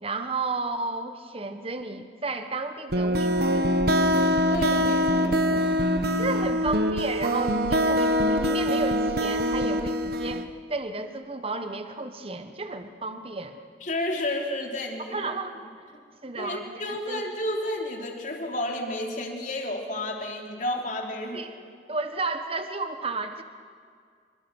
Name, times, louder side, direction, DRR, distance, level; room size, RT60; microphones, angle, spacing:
voice 1, 0.0-3.7 6.2-13.6 15.1-15.7 16.2-17.2 21.3-21.5 21.9-23.4, right 3 dB, 30° right, 7 dB, 1.2 m, -33 dB
sound 1, 2.9-10.5, equal, 55° right, 1.2 m, -24 dB
voice 2, 4.5-5.7 13.8-15.2 16.4-21.5, left 1 dB, 45° left, 1 dB, 3.2 m, -31 dB
26.0 x 25.0 x 6.3 m, 2.1 s
head